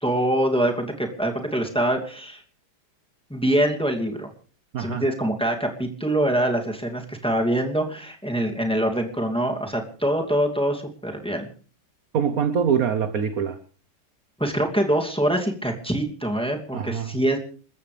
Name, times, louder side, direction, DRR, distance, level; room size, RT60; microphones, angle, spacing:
voice 1, 0.0-2.4 3.3-4.3 4.8-11.5 14.4-17.4, right 1 dB, ahead, 2 dB, 2.5 m, -24 dB
voice 2, 12.1-13.6 16.7-17.2, right 7 dB, 50° right, 10 dB, 1.2 m, -24 dB
28.5 x 14.0 x 3.4 m, 0.41 s
omnidirectional pair, 2.4 m